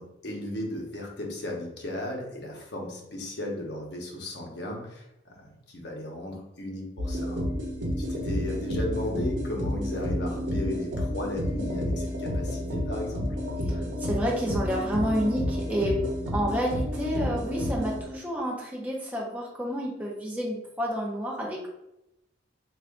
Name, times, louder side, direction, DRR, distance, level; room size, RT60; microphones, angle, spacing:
voice 1, 0.0-7.5 8.1-13.4, left 1 dB, 60° left, 0 dB, 0.8 m, -35 dB
sound 1, 7.0-18.0, equal, 70° right, 0.9 m, -30 dB
voice 2, 13.7-15.9 16.3-21.7, equal, 10° right, -4 dB, 0.6 m, -29 dB
3.5 x 2.4 x 3.6 m, 0.88 s
head